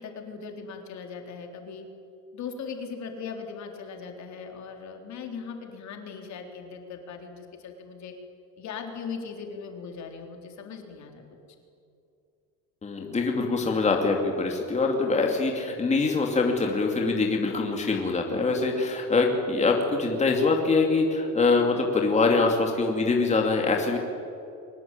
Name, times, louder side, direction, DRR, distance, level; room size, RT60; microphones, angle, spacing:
voice 1, 0.0-1.9 2.3-8.1 8.6-11.2, left 5 dB, 55° left, 3 dB, 3.8 m, -39 dB
voice 2, 12.8-24.0, left 3 dB, 20° left, 1 dB, 2.7 m, -24 dB
23.5 x 19.5 x 9.1 m, 2.5 s
cardioid pair, 145°, 33 cm